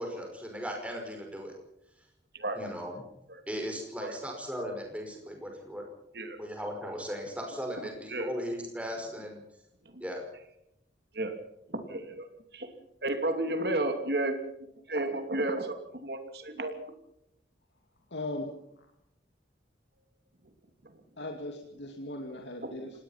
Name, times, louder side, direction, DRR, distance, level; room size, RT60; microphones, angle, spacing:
voice 1, 0.0-1.5 2.5-3.0 3.5-5.8 6.4-9.4 10.0-10.2, equal, 5° right, 2 dB, 5.5 m, -37 dB
voice 2, 11.7-12.3 12.5-12.7 13.0-14.4 14.9-15.8 16.0-16.7 22.6-22.9, right 2 dB, 65° right, 7 dB, 2.8 m, -32 dB
voice 3, 18.1-18.5 21.2-22.9, left 1 dB, 90° left, 2 dB, 2.5 m, -38 dB
26.5 x 19.5 x 5.8 m, 0.79 s
head